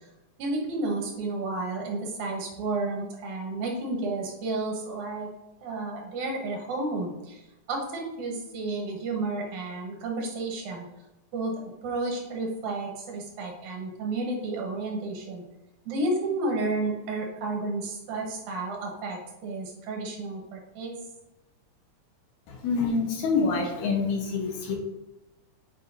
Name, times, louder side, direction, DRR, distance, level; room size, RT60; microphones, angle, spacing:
voice 1, 0.4-5.3 5.6-10.9 11.3-11.5 11.8-15.4 15.9-20.9, right 2 dB, 80° right, 0 dB, 2.6 m, -31 dB
voice 2, 22.5-24.8, left 4 dB, 80° left, 1 dB, 2.5 m, -26 dB
7.6 x 4.7 x 2.7 m, 0.98 s
omnidirectional pair, 3.4 m